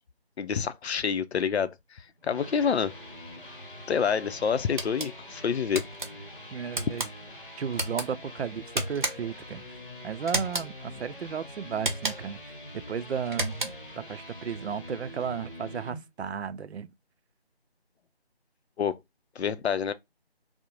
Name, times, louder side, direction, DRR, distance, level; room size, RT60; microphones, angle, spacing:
voice 1, 0.4-2.9 3.9-5.9 18.8-19.0 19.4-19.9, left 7 dB, 85° left, 0.5 m, -28 dB
sound 1, 2.1-16.0, left 1 dB, 55° left, 1.0 m, -45 dB
sound 2, 4.8-5.1 5.7-6.1 6.7-7.1 7.7-8.1 8.7-9.4 10.3-10.7 11.8-12.4 13.3-13.9, right 2 dB, 50° right, 0.7 m, -32 dB
voice 2, 6.5-7.1 7.6-9.6 10.0-16.9, right 7 dB, 85° right, 0.5 m, -34 dB
2.4 x 2.0 x 2.9 m
figure-of-eight pair, 175°, 31 cm